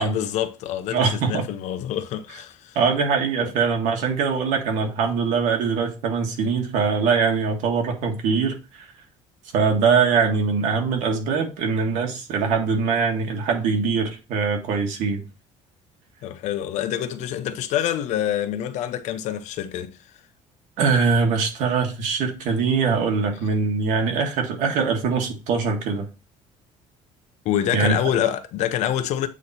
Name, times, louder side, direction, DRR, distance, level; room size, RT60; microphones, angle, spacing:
voice 1, 0.0-2.8 3.4-3.5 16.2-20.0 27.4-29.3, left 11 dB, 65° left, 0.7 m, -26 dB
voice 2, 0.9-1.4 2.7-8.9 9.5-15.2 20.8-26.1 27.7-27.9, right 5 dB, 75° right, 1.7 m, -22 dB
8.3 x 3.0 x 4.1 m
cardioid pair, 150°, 13 cm